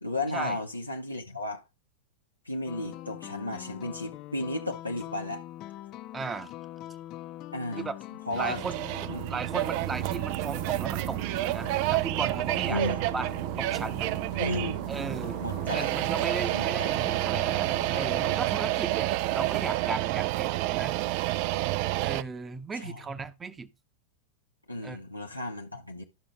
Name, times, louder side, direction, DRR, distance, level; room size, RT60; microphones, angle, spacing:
voice 1, 0.0-1.6 2.4-5.4 7.5-7.9 8.3-8.6 9.1-9.3 12.7-13.0 14.4-14.8 15.4-16.0 16.5-17.0 22.8-23.0 24.7-26.0, left 2 dB, 85° left, 1.0 m, -34 dB
sound 1, 2.6-18.4, left 14 dB, 40° left, 0.4 m, -43 dB
voice 2, 6.1-6.5 7.8-8.0 8.4-8.9 9.3-13.3 13.6-14.1 14.9-15.4 15.7-21.0 22.0-23.7 24.8-25.0, right 4 dB, 15° right, 0.9 m, -36 dB
sound 2, 8.3-22.2, right 17 dB, 45° right, 0.3 m, -29 dB
12.5 x 6.0 x 3.3 m
figure-of-eight pair, 90°, 0 cm